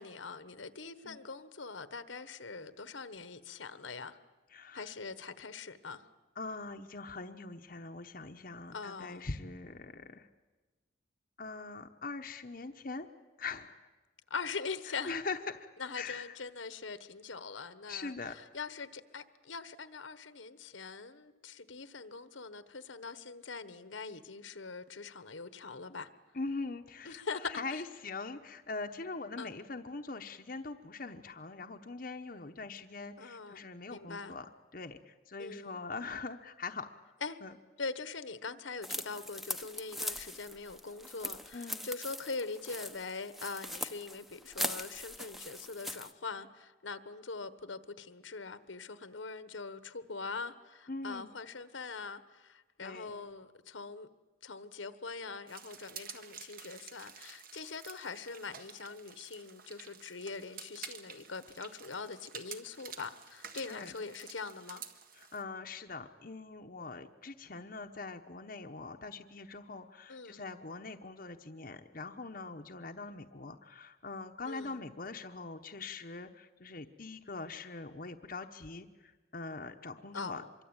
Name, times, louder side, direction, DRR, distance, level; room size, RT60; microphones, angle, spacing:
voice 1, 0.0-4.2 4.7-6.0 8.7-9.3 14.3-15.1 15.8-26.1 27.0-27.8 29.4-29.6 33.2-34.4 35.4-35.8 37.2-37.4 37.8-54.1 54.4-64.8 70.1-70.4 74.5-74.8 80.1-80.5, left 4 dB, 75° left, 1.3 m, -42 dB
voice 2, 4.5-4.9 6.4-10.3 11.4-13.1 13.4-13.9 14.9-15.7 16.0-16.4 17.9-18.4 26.3-34.4 34.7-36.9 37.4-37.5 41.5-41.9 50.9-51.3 52.8-53.2 63.6-63.9 65.1-80.6, left 3 dB, 45° left, 1.0 m, -42 dB
sound 1, 38.8-46.1, left 1 dB, ahead, 0.9 m, -41 dB
sound 2, 55.5-65.4, right 7 dB, 45° right, 1.7 m, -50 dB
25.5 x 23.5 x 8.9 m
head